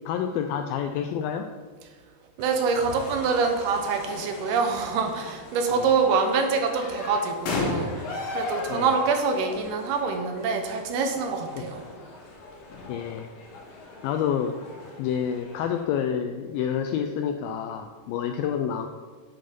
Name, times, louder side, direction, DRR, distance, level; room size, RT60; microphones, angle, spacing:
voice 1, 0.1-1.5 5.7-5.9 8.7-9.0 11.6-11.7 12.9-13.3 14.0-14.6 15.0-18.9, left 8 dB, 85° left, 5 dB, 2.1 m, -28 dB
sound 1, 2.4-15.8, left 2 dB, 65° left, 3.2 m, -37 dB
voice 2, 2.4-7.9 8.3-11.8, right 5 dB, 75° right, 4 dB, 2.8 m, -25 dB
10.5 x 5.7 x 5.2 m, 1.5 s
omnidirectional pair, 4.7 m